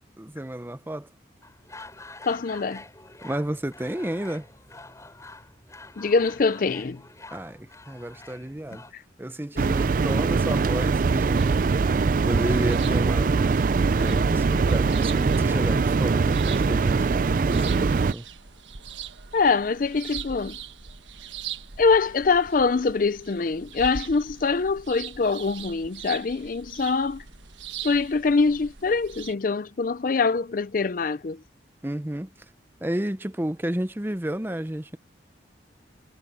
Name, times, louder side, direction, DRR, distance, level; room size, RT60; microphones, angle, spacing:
voice 1, 0.2-1.1 3.2-4.5 7.3-8.9 9.2-11.7 12.3-13.6 13.9-18.3 31.8-32.3 32.8-35.0, right 1 dB, 10° right, 0.7 m, -31 dB
sound 1, 1.4-8.9, left 2 dB, 15° left, 7.7 m, -46 dB
voice 2, 2.2-2.8 6.0-7.0 8.9-9.0 19.3-20.6 21.8-27.2 27.8-31.4, left 4 dB, 45° left, 0.5 m, -24 dB
sound 2, 9.6-18.1, right 4 dB, 45° right, 0.4 m, -22 dB
sound 3, 10.9-29.3, right 7 dB, 75° right, 1.4 m, -42 dB
head